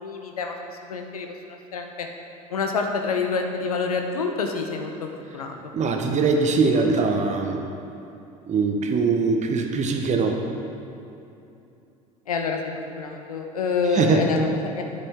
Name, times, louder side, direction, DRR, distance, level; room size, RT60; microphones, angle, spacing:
voice 1, 0.0-2.1 2.5-5.7 6.4-6.5 12.3-12.6 13.0-14.8, left 4 dB, 85° left, 4 dB, 0.7 m, -28 dB
voice 2, 5.7-7.6 8.5-10.4 13.9-14.2, right 4 dB, 40° right, 4 dB, 1.0 m, -22 dB
9.6 x 6.9 x 3.6 m, 2.8 s
hypercardioid pair, 65°, 18 cm